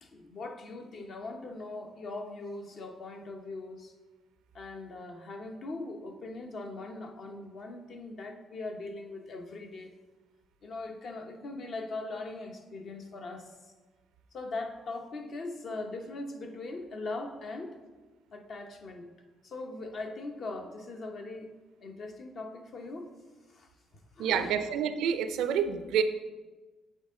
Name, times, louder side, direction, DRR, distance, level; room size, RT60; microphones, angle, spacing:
voice 1, 0.0-3.9 4.5-9.9 10.6-13.6 14.3-17.8 18.3-19.1 19.4-21.5 21.8-23.1 23.5-23.7 24.2-24.6, left 2 dB, 60° left, 4 dB, 0.8 m, -40 dB
voice 2, 24.2-26.0, right 8 dB, 85° right, 10 dB, 0.4 m, -28 dB
8.1 x 3.8 x 3.6 m, 1.2 s
cardioid pair, 80°, 0 cm